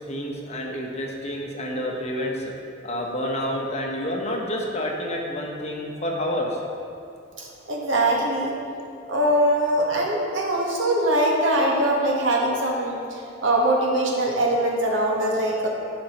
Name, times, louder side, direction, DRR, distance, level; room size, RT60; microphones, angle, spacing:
voice 1, 0.1-2.5 2.8-6.6, left 1 dB, 35° left, 0 dB, 0.9 m, -29 dB
voice 2, 7.4-8.5 9.1-15.7, right 1 dB, 70° right, -1 dB, 1.2 m, -22 dB
12.0 x 5.2 x 3.0 m, 2.5 s
head